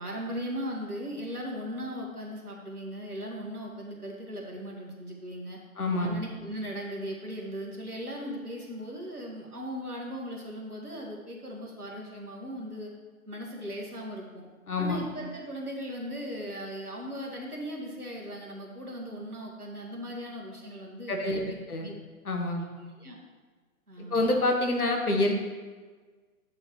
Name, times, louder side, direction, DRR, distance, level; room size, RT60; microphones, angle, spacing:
voice 1, 0.0-5.6 6.0-12.9 13.3-14.5 14.8-21.9 22.6-23.2 23.9-24.3, equal, 85° right, -1 dB, 2.0 m, -38 dB
voice 2, 5.8-6.2 14.7-15.0 21.1-21.9 22.2-22.6 24.1-25.3, left 2 dB, 80° left, 3 dB, 1.5 m, -27 dB
8.7 x 6.2 x 3.2 m, 1.4 s
figure-of-eight pair, 125°, 44 cm